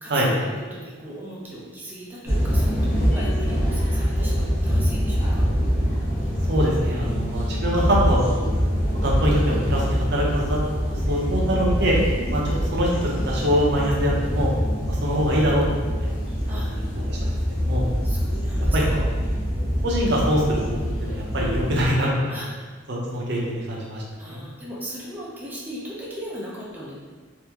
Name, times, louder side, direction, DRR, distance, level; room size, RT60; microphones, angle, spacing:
voice 1, 0.0-5.4 6.9-7.3 12.1-12.5 16.5-16.7 18.0-19.6 22.3-22.5 24.2-27.0, equal, 10° right, -6 dB, 0.5 m, -38 dB
sound 1, 2.2-21.9, equal, 35° left, 1.1 m, -24 dB
sound 2, 3.1-5.6, equal, 10° left, 1.3 m, -43 dB
voice 2, 6.5-8.6 9.0-12.0 12.3-14.5 14.9-16.1 16.5-17.9 18.7-19.1 19.8-22.3 22.9-24.5, equal, 55° right, -4 dB, 0.7 m, -24 dB
3.4 x 2.6 x 2.9 m, 1.5 s
head